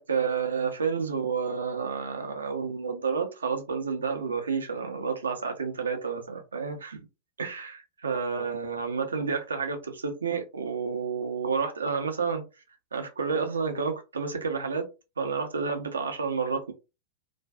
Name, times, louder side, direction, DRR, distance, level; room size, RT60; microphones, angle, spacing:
voice 1, 0.0-7.1 7.4-12.4 12.9-14.9 15.2-16.7, right 5 dB, 75° right, 0.6 m, -30 dB
2.4 x 2.3 x 2.2 m
figure-of-eight pair, 90°, 0 cm